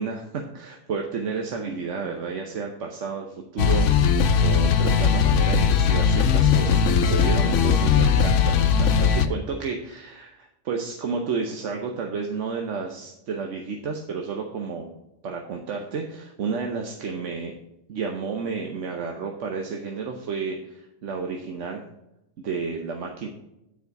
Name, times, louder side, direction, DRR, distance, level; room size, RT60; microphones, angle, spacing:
voice 1, 0.0-14.9 15.2-17.5 17.9-21.8 22.4-23.3, right 5 dB, 80° right, 2 dB, 1.2 m, -31 dB
sound 1, 3.6-9.3, left 6 dB, 80° left, 1.0 m, -19 dB
9.4 x 4.9 x 4.6 m, 0.87 s
omnidirectional pair, 1.2 m